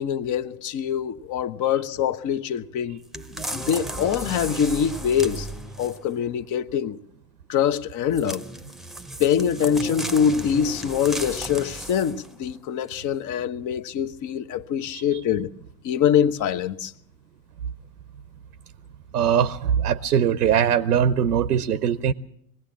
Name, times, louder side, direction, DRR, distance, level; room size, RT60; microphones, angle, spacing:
voice 1, 0.0-3.0 3.5-5.5 5.8-7.0 7.5-8.4 9.2-15.5 15.8-16.9, left 8 dB, 40° left, 1.1 m, -24 dB
sound 1, 3.1-6.1 8.1-12.3 12.9-13.0, right 1 dB, ahead, 0.9 m, -35 dB
voice 2, 19.1-22.1, right 8 dB, 85° right, 0.8 m, -21 dB
21.5 x 16.5 x 7.3 m
hypercardioid pair, 85°, 46 cm